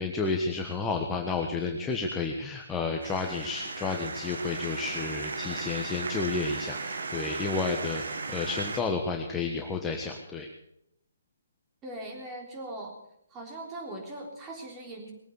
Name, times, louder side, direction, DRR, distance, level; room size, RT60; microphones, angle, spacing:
voice 1, 0.0-10.5, left 4 dB, 10° left, 1 dB, 1.3 m, -31 dB
sound 1, 3.0-8.8, right 4 dB, 65° right, 1.9 m, -36 dB
voice 2, 11.8-13.0 13.3-15.1, right 1 dB, 15° right, 1 dB, 3.7 m, -40 dB
20.5 x 9.2 x 6.7 m, 0.78 s
figure-of-eight pair, 145°, 0 cm